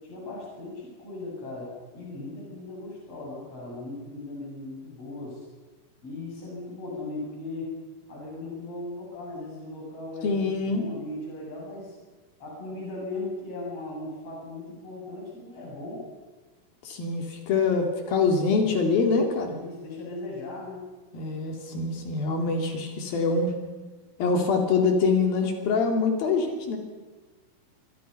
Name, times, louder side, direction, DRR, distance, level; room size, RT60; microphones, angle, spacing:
voice 1, 0.0-5.5 6.0-7.7 8.1-12.0 12.4-16.0 19.5-20.9, left 2 dB, 40° left, -4 dB, 9.1 m, -38 dB
voice 2, 10.2-10.9 16.8-19.6 21.1-23.5 24.2-26.8, left 4 dB, 80° left, 3 dB, 4.4 m, -24 dB
27.0 x 25.0 x 5.7 m, 1.3 s
omnidirectional pair, 4.1 m